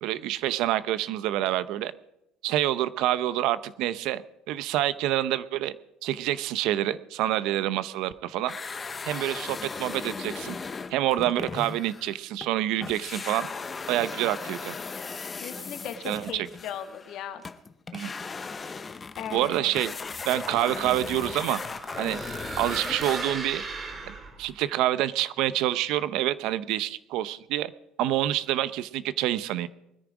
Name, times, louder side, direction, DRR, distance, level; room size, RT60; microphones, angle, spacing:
voice 1, 0.0-1.9 2.4-4.2 4.5-5.7 6.0-8.5 9.0-10.6 10.9-13.5 13.9-14.7 16.0-16.5 17.9-18.1 19.3-19.9 20.2-21.6 22.0-22.2 22.6-23.6 24.1-24.2 24.4-27.7 28.0-29.7, right 13 dB, 70° right, 15 dB, 0.7 m, -27 dB
sound 1, 8.4-12.5 12.8-23.6, left 4 dB, 20° left, 0.7 m, -37 dB
voice 2, 15.4-17.4 19.2-19.7, left 9 dB, 55° left, 9 dB, 1.4 m, -38 dB
sound 2, 20.1-24.6, right 4 dB, 30° right, 2.4 m, -38 dB
21.0 x 10.0 x 4.9 m, 0.87 s
cardioid pair, 135°, 0 cm